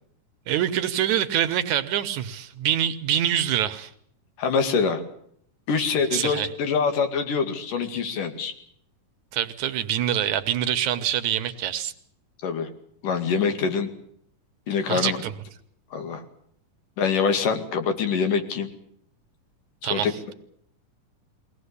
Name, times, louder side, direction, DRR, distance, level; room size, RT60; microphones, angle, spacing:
voice 1, 0.5-3.9 6.1-6.5 9.3-11.9 14.9-15.3 19.8-20.1, right 10 dB, 70° right, 11 dB, 2.4 m, -25 dB
voice 2, 4.4-5.0 5.7-8.5 12.4-12.7 13.0-13.9 14.7-15.2 15.9-16.2 17.0-18.7 19.9-20.1, left 5 dB, 80° left, 7 dB, 3.9 m, -24 dB
22.5 x 18.5 x 8.3 m, 0.68 s
omnidirectional pair, 3.7 m